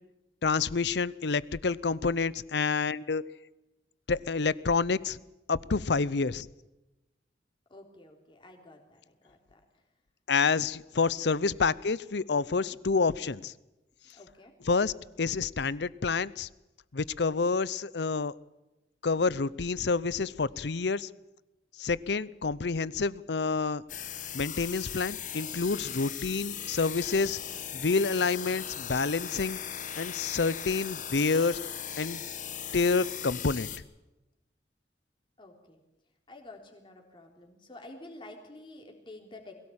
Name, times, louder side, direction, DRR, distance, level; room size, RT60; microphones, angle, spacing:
voice 1, 0.4-3.2 4.1-5.2 5.5-6.5 10.3-13.5 14.6-16.5 16.9-18.3 19.0-21.1 21.8-23.8 24.3-27.4 27.7-29.6 30.0-31.6 32.0-32.2 32.7-33.7, left 4 dB, 70° left, 19 dB, 0.7 m, -28 dB
voice 2, 7.7-9.6 12.7-12.8 14.2-14.5 35.4-35.8 36.3-39.5, left 2 dB, 30° left, 2 dB, 3.6 m, -50 dB
sound 1, 23.9-33.8, left 9 dB, 45° left, 1.3 m, -38 dB
21.5 x 17.5 x 8.7 m, 1.0 s
head